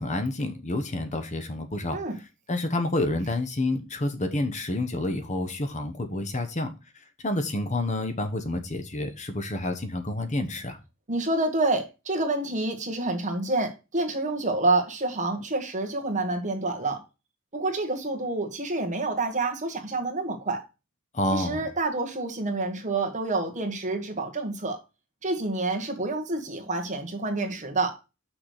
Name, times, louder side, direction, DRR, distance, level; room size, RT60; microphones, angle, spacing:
voice 1, 0.0-2.0 2.5-6.7 7.2-10.8 21.1-21.7, left 1 dB, 35° left, 1.1 m, -29 dB
voice 2, 11.1-17.0 17.5-20.6 21.3-24.8 25.2-28.0, right 2 dB, 35° right, 1.6 m, -28 dB
6.2 x 4.9 x 6.6 m
head